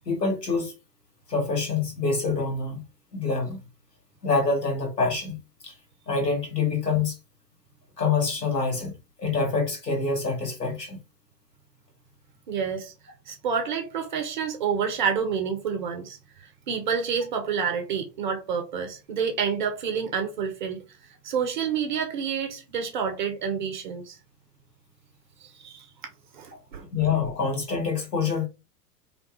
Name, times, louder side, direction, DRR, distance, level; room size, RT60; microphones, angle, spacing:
voice 1, 0.1-0.7 1.3-2.8 3.1-3.6 4.2-5.4 5.6-5.7 6.1-7.2 8.0-8.9 9.2-11.0 26.9-28.5, left 4 dB, 80° left, 1.2 m, -26 dB
voice 2, 12.5-12.9 13.3-16.2 16.7-20.8 21.2-24.2 25.4-25.9 26.3-26.8, right 6 dB, 35° right, 0.4 m, -28 dB
2.5 x 2.2 x 2.7 m
figure-of-eight pair, 100°, 48 cm